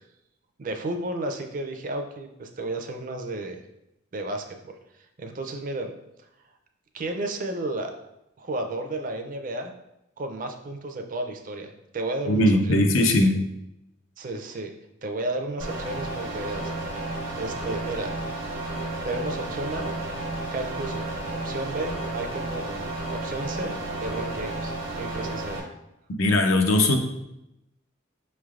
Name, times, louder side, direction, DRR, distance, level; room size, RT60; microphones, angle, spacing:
voice 1, 0.6-3.6 4.1-4.7 5.2-5.9 6.9-7.9 8.4-9.7 10.2-13.1 14.2-14.7 15.0-16.9 17.4-18.1 19.0-19.9 20.5-25.6, right 2 dB, 40° right, 5 dB, 0.4 m, -33 dB
voice 2, 12.3-13.4 26.2-27.0, left 1 dB, 90° left, 4 dB, 0.6 m, -20 dB
sound 1, 15.6-25.6, right 2 dB, 85° right, 1.0 m, -32 dB
5.7 x 3.2 x 2.4 m, 0.87 s
head